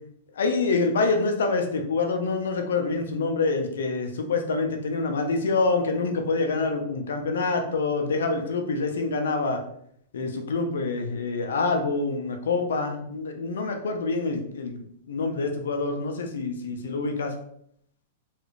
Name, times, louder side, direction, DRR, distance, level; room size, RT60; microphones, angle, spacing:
voice 1, 0.4-9.6 10.1-17.3, left 3 dB, 90° left, 5 dB, 0.6 m, -26 dB
3.2 x 2.5 x 3.1 m, 0.69 s
hypercardioid pair, 140°, 0 cm